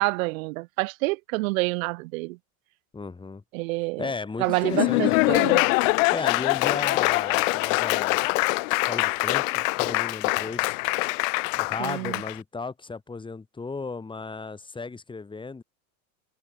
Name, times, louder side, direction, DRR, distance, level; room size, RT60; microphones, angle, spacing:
voice 1, 0.0-2.4 3.5-4.0 4.4-5.6 11.8-12.2, right 25 dB, 65° right, 0.8 m, -27 dB
voice 2, 2.9-3.4 4.0-5.4 6.1-8.2 8.8-10.8 11.6-15.6, left 4 dB, 10° left, 2.5 m, -35 dB
Laughter / Applause, 4.5-12.4, left 28 dB, 65° left, 0.8 m, -24 dB
supercardioid pair, 125°, 43 cm